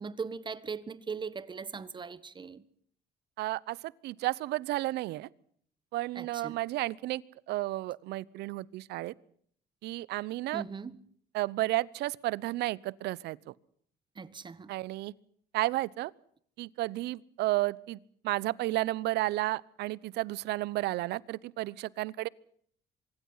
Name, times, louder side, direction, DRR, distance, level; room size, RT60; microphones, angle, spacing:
voice 1, 0.0-2.6 6.1-6.6 10.5-11.0 14.1-14.7, right 5 dB, 25° right, 1.5 m, -39 dB
voice 2, 3.4-5.3 5.9-9.1 9.8-10.6 11.3-13.5 14.7-15.1 15.5-16.1 16.6-18.0 18.2-22.3, right 17 dB, 80° right, 0.9 m, -32 dB
25.0 x 22.5 x 5.7 m
cardioid pair, 110°, 17 cm